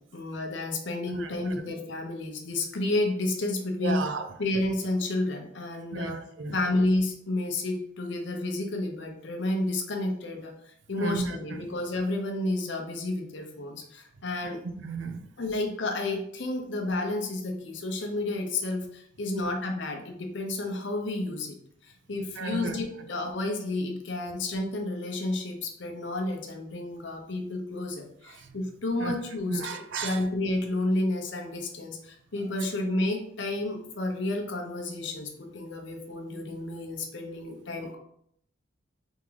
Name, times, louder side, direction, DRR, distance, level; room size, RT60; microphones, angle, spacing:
voice 1, 0.1-4.1 4.4-6.2 6.5-14.6 15.4-21.5 21.8-38.0, left 2 dB, 70° left, 2 dB, 0.8 m, -31 dB
voice 2, 1.1-1.6 3.8-4.3 5.9-6.6 11.0-11.6 14.4-15.3 22.4-22.8 28.4-28.5 29.0-29.1 29.5-30.2, right 4 dB, 75° right, 8 dB, 0.5 m, -34 dB
3.6 x 3.5 x 3.2 m, 0.70 s
head